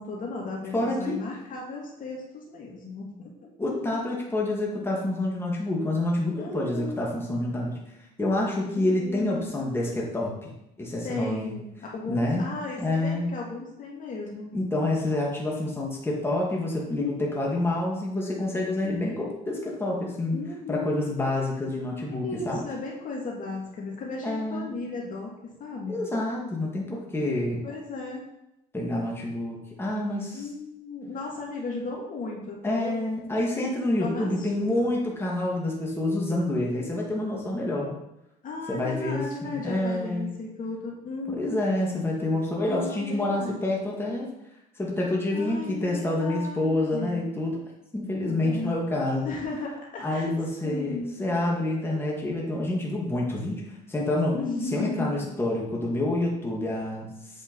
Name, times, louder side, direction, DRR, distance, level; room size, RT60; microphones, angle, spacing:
voice 1, 0.0-3.5 3.8-4.0 6.3-7.1 8.8-9.5 11.0-14.5 20.3-21.0 22.2-26.0 27.6-28.2 30.3-32.9 34.0-34.9 38.4-41.6 42.7-43.6 45.3-47.3 48.3-48.8 49.2-50.3 50.6-51.2 54.3-55.3, left 3 dB, 50° left, -2 dB, 2.4 m, -35 dB
voice 2, 0.7-1.2 3.6-7.8 8.2-11.5 12.1-12.5 12.8-13.3 14.5-20.4 20.7-22.6 24.2-24.8 25.9-27.6 28.7-30.4 32.6-38.0 38.7-40.4 41.3-44.3 44.8-47.6 47.9-49.3 50.0-53.6 53.9-54.3 54.7-57.1, left 1 dB, 15° left, -3 dB, 2.5 m, -28 dB
8.6 x 5.3 x 5.5 m, 0.87 s
cardioid pair, 110°, 17 cm